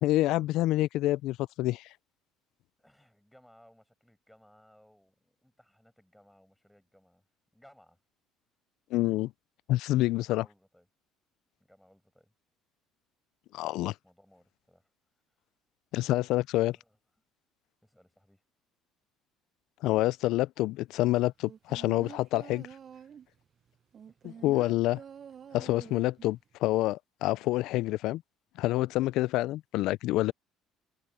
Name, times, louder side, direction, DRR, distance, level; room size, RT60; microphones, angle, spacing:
voice 1, 0.0-1.8 8.9-9.3 9.7-10.4 13.5-13.9 15.9-16.8 19.8-22.7 24.4-25.0 25.5-28.2 28.6-30.3, left 17 dB, 70° left, 0.4 m, -27 dB
voice 2, 2.8-7.2 7.5-8.0 10.2-10.9 11.6-12.3 14.0-14.9 16.5-17.0 17.8-18.4 24.1-24.3, equal, ahead, 6.7 m, -61 dB
sound 1, 21.4-23.4 23.9-26.3 26.7-26.8, right 8 dB, 45° right, 0.8 m, -47 dB
supercardioid pair, 85°, 0 cm